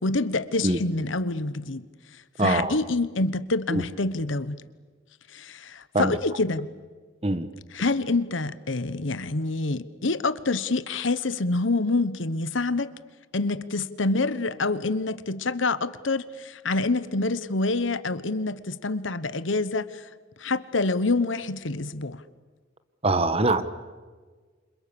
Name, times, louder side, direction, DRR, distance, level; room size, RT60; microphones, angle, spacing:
voice 1, 0.0-1.8 2.4-4.6 5.3-6.7 7.7-12.9 13.3-20.1 20.4-22.2, left 3 dB, 75° left, 1.2 m, -27 dB
voice 2, 2.4-2.8 3.7-3.8 5.9-6.2 7.2-7.5 23.0-23.6, right 2 dB, 30° right, 1.4 m, -23 dB
29.0 x 27.0 x 7.0 m
head